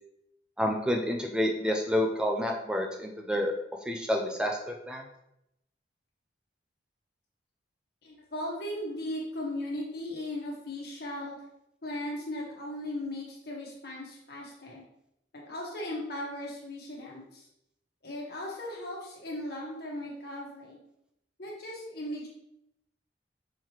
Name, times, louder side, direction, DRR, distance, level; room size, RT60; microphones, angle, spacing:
voice 1, 0.6-3.5 3.9-5.0, left 1 dB, 5° right, 2 dB, 0.4 m, -29 dB
voice 2, 8.0-11.3 11.8-14.8 15.3-17.4 18.0-20.8 21.4-22.3, left 1 dB, 55° left, -3 dB, 1.3 m, -37 dB
5.6 x 3.1 x 3.0 m, 0.80 s
head